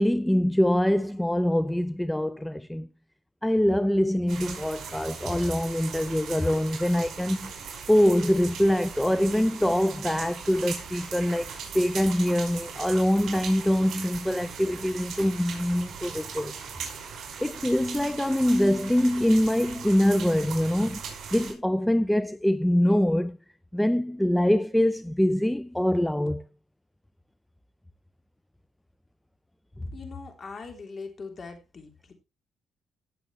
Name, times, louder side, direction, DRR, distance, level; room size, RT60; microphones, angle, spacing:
voice 1, 0.0-2.9 3.4-7.5 7.9-16.5 17.0-21.0 21.3-23.4 23.7-26.4, left 1 dB, 5° left, 0.5 m, -24 dB
sound 1, 4.3-21.5, right 6 dB, 65° right, 5.5 m, -39 dB
voice 2, 29.9-32.1, left 4 dB, 45° left, 3.4 m, -41 dB
17.0 x 6.9 x 3.2 m
cardioid pair, 90°, 0 cm